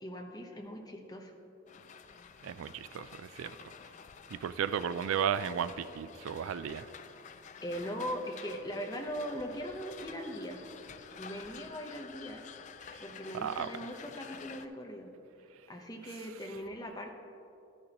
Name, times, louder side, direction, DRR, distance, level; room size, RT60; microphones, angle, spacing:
voice 1, 0.0-1.4 7.6-10.7 11.2-12.4 13.0-15.1 15.7-17.1, equal, 20° left, 0.8 m, -40 dB
sound 1, 1.7-14.6, left 6 dB, 35° left, 0.3 m, -50 dB
voice 2, 2.4-3.7 4.3-6.9 12.9-13.0 13.3-13.7, right 8 dB, 90° right, 0.3 m, -34 dB
12.5 x 10.0 x 2.9 m
head